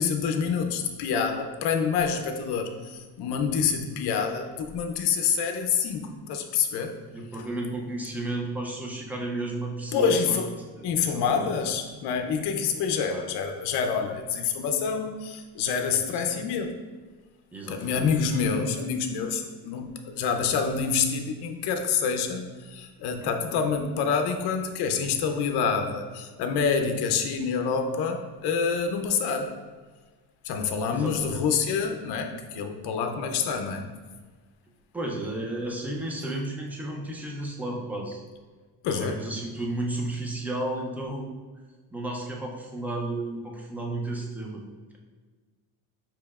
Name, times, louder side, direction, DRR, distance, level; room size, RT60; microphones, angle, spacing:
voice 1, 0.0-7.0 9.9-10.6 10.8-16.7 17.7-29.5 30.4-33.9 38.8-39.2, left 6 dB, 65° left, 6 dB, 0.6 m, -27 dB
voice 2, 7.1-10.4 10.8-11.5 12.9-13.2 16.1-16.4 17.5-18.1 23.2-23.3 30.9-31.4 34.9-38.2 38.9-41.4 41.9-44.6, right 2 dB, 5° right, -1 dB, 0.4 m, -33 dB
6.7 x 2.9 x 2.3 m, 1.4 s
cardioid pair, 140°, 42 cm